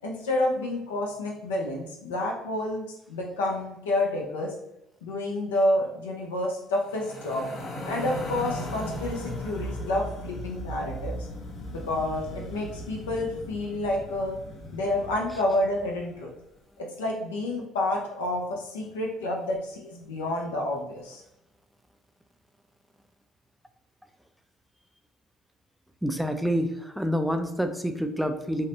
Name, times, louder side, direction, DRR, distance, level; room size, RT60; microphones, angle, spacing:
voice 1, 0.0-4.5 5.0-7.5 7.9-11.3 11.7-14.4 14.7-16.3 17.0-21.2, left 1 dB, 90° left, -1 dB, 0.5 m, -29 dB
sound 1, 6.8-16.1, equal, 45° left, 0.6 m, -37 dB
voice 2, 26.0-28.7, equal, 5° right, 7 dB, 0.3 m, -27 dB
2.7 x 2.1 x 2.7 m, 0.85 s
hypercardioid pair, 65°, 0 cm